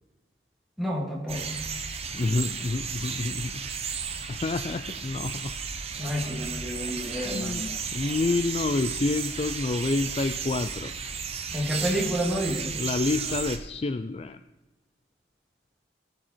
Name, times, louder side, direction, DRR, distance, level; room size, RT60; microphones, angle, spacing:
voice 1, 0.8-1.5 6.0-7.7 11.5-12.8, equal, ahead, -3 dB, 2.5 m, -29 dB
sound 1, 1.3-13.6, right 6 dB, 35° right, 1.0 m, -34 dB
voice 2, 2.1-3.6 4.3-5.5 7.1-7.7 7.9-10.9 12.8-14.4, left 3 dB, 35° left, 11 dB, 0.4 m, -28 dB
17.5 x 7.6 x 4.5 m, 1.1 s
head